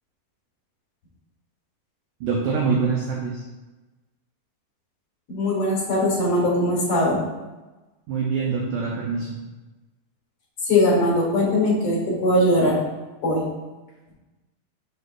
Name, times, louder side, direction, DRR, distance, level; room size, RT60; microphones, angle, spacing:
voice 1, 2.2-3.4 8.1-9.4, right 5 dB, 80° right, -2 dB, 1.8 m, -24 dB
voice 2, 5.3-7.2 10.6-12.8 13.2-13.4, left 1 dB, 45° left, -4 dB, 1.9 m, -20 dB
6.6 x 6.5 x 2.5 m, 1.1 s
omnidirectional pair, 4.6 m